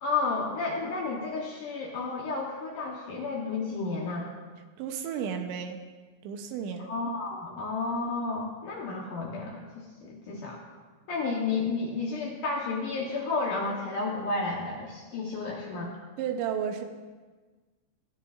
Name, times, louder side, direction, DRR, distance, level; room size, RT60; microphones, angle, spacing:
voice 1, 0.0-4.3 6.8-9.6 10.0-10.6 11.1-15.9, left 3 dB, 75° left, -2 dB, 1.9 m, -31 dB
voice 2, 4.8-5.8 6.2-7.0 16.2-16.8, right 8 dB, 80° right, 5 dB, 3.0 m, -33 dB
26.0 x 10.0 x 2.5 m, 1.4 s
omnidirectional pair, 5.5 m